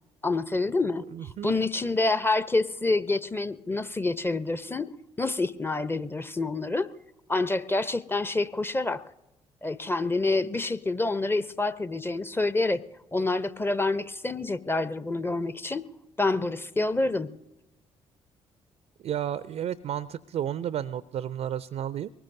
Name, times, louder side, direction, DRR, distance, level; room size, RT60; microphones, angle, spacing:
voice 1, 0.2-1.0 1.4-4.9 5.2-6.9 7.3-9.0 9.6-12.8 13.1-15.8 16.2-17.3, left 3 dB, 15° left, 15 dB, 0.7 m, -27 dB
voice 2, 1.1-1.5 19.0-22.1, right 10 dB, 50° right, 16 dB, 0.5 m, -32 dB
23.5 x 19.5 x 2.7 m, 0.99 s
figure-of-eight pair, 45°, 15 cm